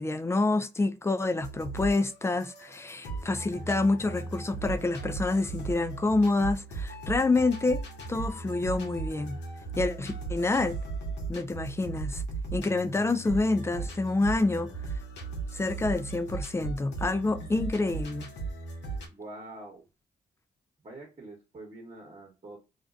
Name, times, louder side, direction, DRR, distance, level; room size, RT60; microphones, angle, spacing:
voice 1, 0.0-7.8 8.1-9.4 9.8-10.8 11.3-12.2 12.5-14.7 15.5-18.3, left 2 dB, 15° left, 0.4 m, -27 dB
sound 1, 1.4-19.1, right 4 dB, 80° left, 0.8 m, -37 dB
voice 2, 19.0-19.8 20.8-22.6, right 2 dB, 35° right, 1.2 m, -45 dB
2.5 x 2.2 x 2.4 m
supercardioid pair, 60°, 17 cm